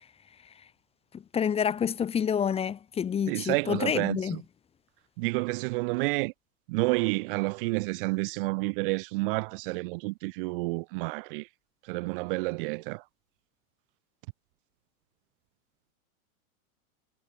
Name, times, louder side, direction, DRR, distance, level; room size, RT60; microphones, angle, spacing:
voice 1, 1.1-4.4, left 8 dB, 15° left, 1.5 m, -28 dB
voice 2, 3.3-4.4 5.2-6.3 6.7-11.5 11.8-13.0, right 26 dB, 40° right, 1.0 m, -29 dB
supercardioid pair, 155°, 43 cm